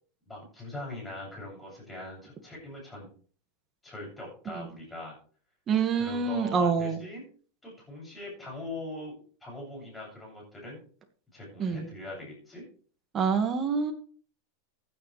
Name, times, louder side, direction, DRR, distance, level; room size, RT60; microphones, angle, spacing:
voice 1, 0.3-3.1 3.8-5.2 5.9-7.2 7.6-9.2 9.4-10.8 11.3-12.6, left 1 dB, 10° left, -2 dB, 7.5 m, -41 dB
voice 2, 5.7-7.0 11.6-11.9 13.1-13.9, right 5 dB, 25° right, 5 dB, 2.0 m, -26 dB
15.5 x 10.5 x 3.4 m, 0.43 s
supercardioid pair, 150°, 0 cm